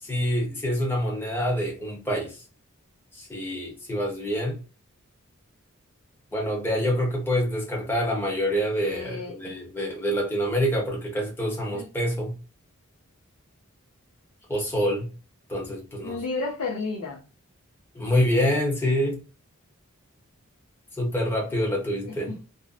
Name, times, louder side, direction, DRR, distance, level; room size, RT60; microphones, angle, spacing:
voice 1, 0.1-2.4 3.2-4.6 6.3-12.3 14.5-15.1 15.5-16.2 17.9-19.2 21.0-22.3, equal, 10° left, 0.8 m, -26 dB
voice 2, 8.8-9.6 11.7-11.9 16.0-17.2 22.1-22.5, left 3 dB, 90° left, 0.5 m, -32 dB
2.5 x 2.1 x 2.3 m
head